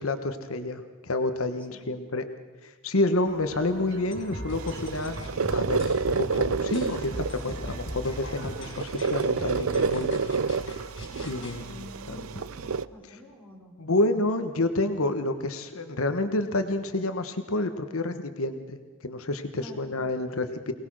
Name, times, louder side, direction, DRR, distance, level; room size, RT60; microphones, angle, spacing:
voice 1, 0.0-2.2 2.6-10.2 11.2-12.2 13.8-20.7, left 2 dB, 75° left, 8 dB, 1.2 m, -29 dB
sound 1, 3.2-8.7, right 1 dB, 60° right, 2.6 m, -47 dB
sound 2, 4.1-11.6, equal, 55° left, 5.6 m, -39 dB
sound 3, 4.5-12.8, right 5 dB, 80° right, 0.6 m, -29 dB
voice 2, 11.2-14.0 19.6-19.8, equal, 5° left, -3 dB, 4.5 m, -48 dB
23.5 x 19.0 x 6.3 m, 1.4 s
head